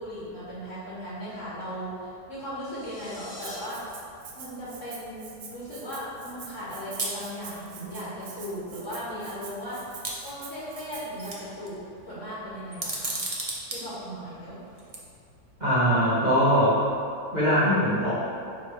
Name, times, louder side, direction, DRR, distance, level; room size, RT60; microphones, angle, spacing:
voice 1, 0.0-3.8 4.4-13.2 13.7-14.6, equal, 45° left, -9 dB, 1.8 m, -37 dB
sound 1, 2.5-3.6, left 1 dB, 70° left, 2.2 m, -46 dB
Rattle (instrument), 3.4-11.3, right 6 dB, 75° right, 1.4 m, -45 dB
sound 2, 7.0-7.2 8.3-8.4 8.8-8.9 10.0-10.8 11.2-11.7 12.7-13.8 14.8-15.0, right 2 dB, 60° right, 0.3 m, -32 dB
voice 2, 15.6-16.8 17.3-18.1, equal, 25° right, -12 dB, 1.2 m, -21 dB
9.7 x 3.5 x 3.2 m, 2.5 s
omnidirectional pair, 2.0 m